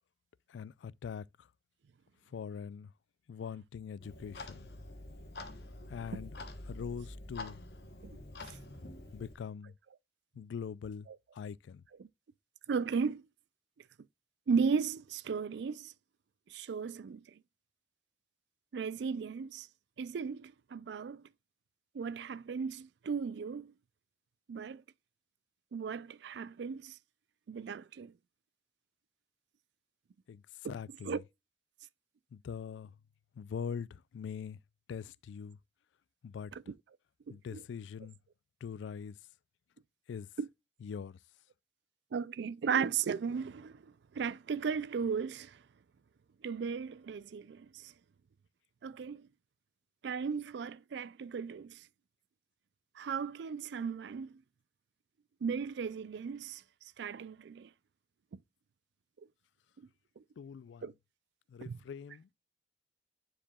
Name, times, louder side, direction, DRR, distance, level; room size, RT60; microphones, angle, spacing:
voice 1, 0.5-1.5 2.3-2.9 3.3-4.7 5.9-6.3 6.6-7.6 9.1-9.7 10.3-11.1 11.3-11.8 30.3-31.2 32.3-33.0 33.4-34.6 34.9-35.6 36.2-36.5 37.3-38.2 38.6-39.2 40.1-40.3 40.8-41.2 60.4-60.9 61.5-62.3, left 7 dB, 85° left, 0.3 m, -42 dB
Clock, 4.0-9.3, left 2 dB, 60° left, 0.9 m, -47 dB
voice 2, 12.7-13.2 14.5-15.9 16.5-17.2 18.7-19.7 20.0-21.2 21.9-23.7 24.5-24.8 25.7-27.0 27.5-28.1 30.6-30.7 31.1-31.2 36.5-36.7 37.3-37.6 40.4-40.5 42.1-45.6 46.4-47.9 48.8-49.3 50.0-51.8 53.0-54.4 55.4-56.6 57.0-57.7 60.2-60.3 60.8-60.9 61.6-61.8, right 6 dB, 70° right, 0.4 m, -36 dB
9.9 x 4.7 x 2.3 m
head